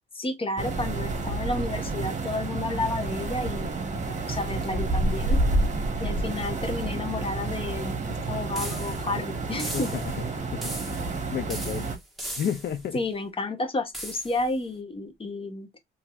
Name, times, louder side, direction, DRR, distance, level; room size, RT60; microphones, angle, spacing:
voice 1, 0.1-5.4 6.0-9.9 12.9-15.8, left 2 dB, 25° left, 1.1 m, -31 dB
sound 1, 0.6-12.0, right 2 dB, 35° right, 1.2 m, -29 dB
sound 2, 8.5-9.1 9.6-10.2 10.6-11.2 11.5-12.8 13.9-14.4, right 1 dB, ahead, 1.4 m, -38 dB
voice 2, 9.7-11.9 12.4-13.0, left 8 dB, 60° left, 0.5 m, -33 dB
3.9 x 2.8 x 2.4 m
cardioid pair, 90°, 20 cm